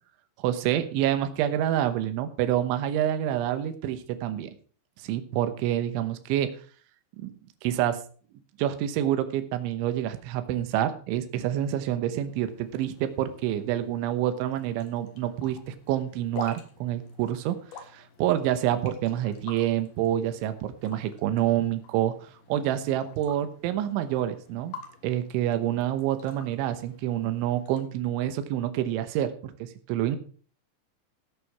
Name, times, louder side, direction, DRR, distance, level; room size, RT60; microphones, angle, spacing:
voice 1, 0.4-4.5 5.0-6.5 7.2-7.3 7.6-8.0 8.6-24.8 25.0-30.2, right 11 dB, 80° right, 9 dB, 3.4 m, -27 dB
sound 1, 12.3-27.8, left 5 dB, 60° left, 3.0 m, -48 dB
14.5 x 8.5 x 4.7 m, 0.42 s
omnidirectional pair, 5.6 m